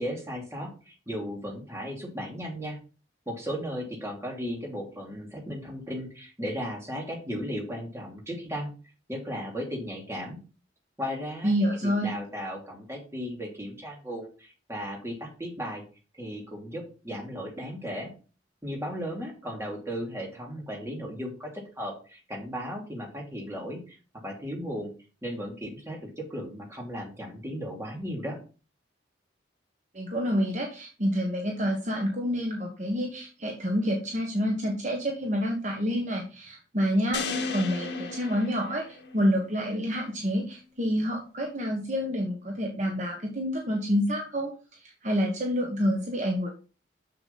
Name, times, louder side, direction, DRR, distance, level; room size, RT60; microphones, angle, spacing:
voice 1, 0.0-2.8 3.3-8.7 9.1-10.4 11.0-11.5 11.8-15.8 16.2-18.1 18.6-24.0 24.2-24.9 25.2-28.4, equal, 15° right, -1 dB, 2.8 m, -36 dB
voice 2, 11.4-12.1 29.9-37.2 37.5-44.5 44.8-46.5, equal, 40° right, 1 dB, 1.3 m, -28 dB
sound 1, 37.1-39.4, left 4 dB, 65° left, 1.8 m, -34 dB
7.1 x 6.9 x 4.1 m, 0.35 s
head